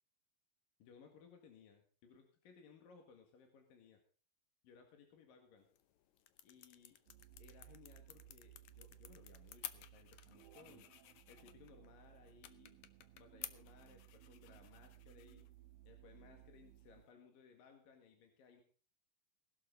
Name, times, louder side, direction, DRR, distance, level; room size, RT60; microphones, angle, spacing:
voice 1, 0.8-4.0 4.6-5.7 6.4-7.0 7.4-10.9 11.3-12.8 13.2-15.5 15.8-18.6, left 6 dB, 65° left, 3 dB, 3.4 m, -63 dB
sound 1, 5.6-17.1, left 12 dB, 85° left, 1.6 m, -56 dB
sound 2, 7.1-17.0, right 14 dB, 75° right, 2.3 m, -61 dB
19.0 x 12.0 x 3.9 m, 0.38 s
omnidirectional pair, 4.5 m